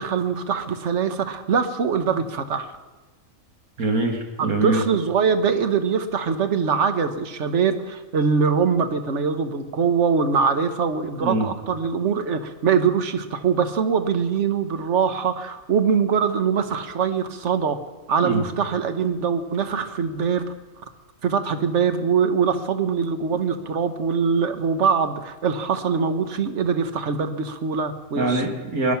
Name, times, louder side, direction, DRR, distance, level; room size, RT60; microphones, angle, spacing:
voice 1, 0.0-2.8 4.4-17.8 18.1-20.4 21.2-28.4, right 6 dB, 55° right, 9 dB, 1.3 m, -23 dB
voice 2, 3.8-4.8 11.2-11.5 18.2-18.4 28.2-28.9, right 2 dB, 75° right, 2 dB, 2.4 m, -23 dB
20.5 x 11.5 x 5.8 m, 1.2 s
omnidirectional pair, 1.5 m